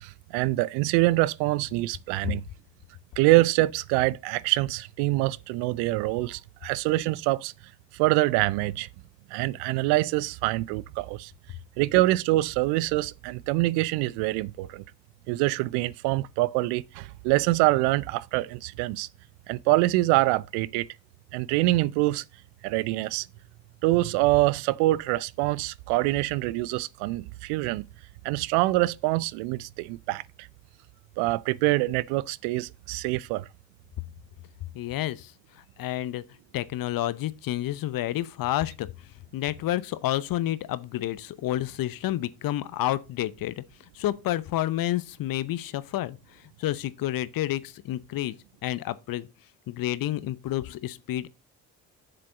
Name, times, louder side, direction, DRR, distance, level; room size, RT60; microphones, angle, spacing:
voice 1, 0.0-2.4 3.2-7.5 7.9-8.9 9.3-11.3 11.8-14.8 15.3-19.1 19.5-20.9 21.3-22.2 22.6-23.3 23.8-27.8 28.2-30.2 31.2-33.5, right 19 dB, 70° right, 0.5 m, -25 dB
voice 2, 34.7-35.3 35.8-36.2 36.5-38.9 39.3-43.6 43.9-48.3 48.6-49.3 49.7-51.3, left 14 dB, 55° left, 0.8 m, -29 dB
7.4 x 6.8 x 3.9 m
hypercardioid pair, 55°, 41 cm